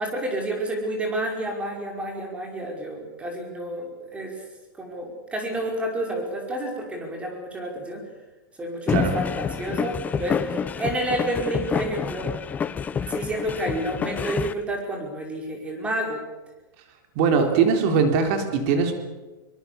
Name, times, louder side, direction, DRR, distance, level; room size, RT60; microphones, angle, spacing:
voice 1, 0.0-4.4 4.7-8.1 8.6-12.3 13.0-16.2 17.4-17.5, right 1 dB, 10° right, 1 dB, 5.5 m, -30 dB
sound 1, 8.9-14.5, left 6 dB, 15° left, 0.7 m, -28 dB
voice 2, 17.2-18.9, right 5 dB, 45° right, 5 dB, 3.6 m, -21 dB
23.5 x 22.5 x 7.0 m, 1.2 s
hypercardioid pair, 150°, 11 cm